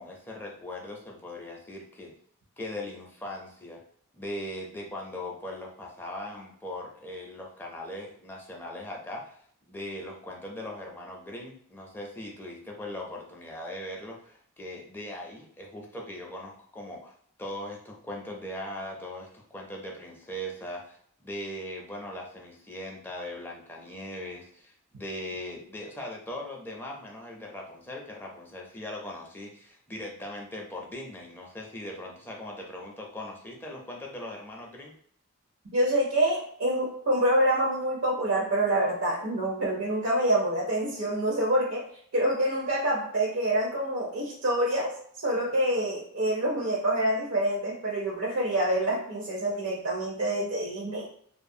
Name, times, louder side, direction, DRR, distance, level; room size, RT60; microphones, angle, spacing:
voice 1, 0.0-2.1 2.6-3.8 4.1-9.4 9.7-17.1 17.4-34.9, left 1 dB, 10° left, -1 dB, 0.4 m, -39 dB
voice 2, 35.7-41.9 42.1-51.1, right 1 dB, 70° right, -3 dB, 0.6 m, -26 dB
2.5 x 2.4 x 2.6 m, 0.62 s
head